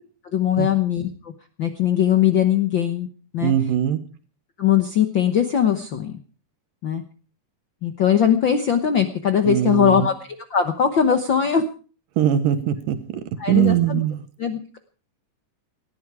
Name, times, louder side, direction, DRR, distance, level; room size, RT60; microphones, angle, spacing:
voice 1, 0.3-1.3 1.6-3.1 3.3-3.5 4.6-6.2 6.8-7.0 7.8-10.1 10.5-11.6 13.4-14.0 14.4-14.8, left 8 dB, 75° left, 7 dB, 1.1 m, -20 dB
voice 2, 3.4-4.0 9.4-10.1 12.2-14.2, right 11 dB, 90° right, 11 dB, 2.9 m, -21 dB
19.0 x 13.0 x 4.7 m, 0.39 s
omnidirectional pair, 3.8 m